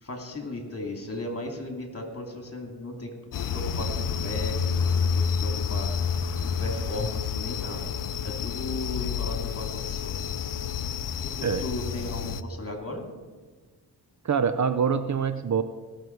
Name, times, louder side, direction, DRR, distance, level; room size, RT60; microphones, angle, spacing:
voice 1, 0.0-7.9 8.2-10.2 11.2-13.0, left 1 dB, 35° left, 3 dB, 2.7 m, -36 dB
sound 1, 3.3-12.4, left 7 dB, 50° left, 0.6 m, -29 dB
Telephone, 3.8-10.8, left 4 dB, 65° right, 3.6 m, -41 dB
voice 2, 14.2-15.6, right 6 dB, 45° right, 12 dB, 0.6 m, -25 dB
18.5 x 6.6 x 4.6 m, 1.4 s
cardioid pair, 55°, 41 cm